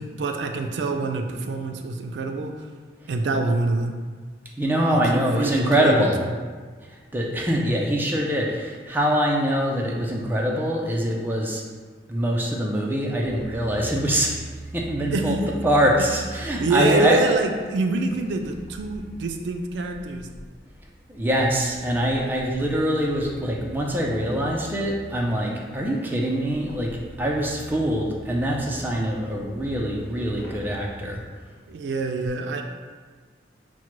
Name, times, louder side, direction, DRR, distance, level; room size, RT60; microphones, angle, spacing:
voice 1, 0.0-2.7 3.1-4.0 4.9-6.3 15.1-15.6 16.0-16.1 16.4-20.3 31.7-32.6, right 3 dB, 80° right, 4 dB, 0.3 m, -26 dB
voice 2, 4.6-6.2 6.9-11.6 12.1-14.4 14.7-15.4 15.6-17.3 21.1-31.2, equal, 10° right, -2 dB, 0.4 m, -24 dB
sound 1, 13.2-31.3, right 2 dB, 70° left, 0.7 m, -42 dB
5.9 x 2.1 x 3.0 m, 1.5 s
head